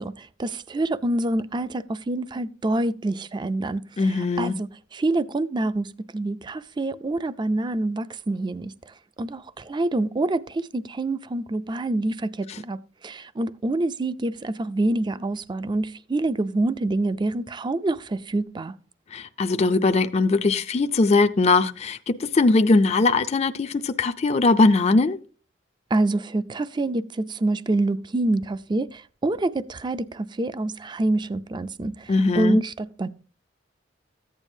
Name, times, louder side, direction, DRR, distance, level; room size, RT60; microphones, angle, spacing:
voice 1, 0.0-18.8 25.9-33.1, right 2 dB, 25° right, 0.4 m, -26 dB
voice 2, 4.0-4.6 19.1-25.2 32.1-32.6, left 3 dB, 35° left, 0.4 m, -20 dB
14.5 x 8.9 x 2.7 m
head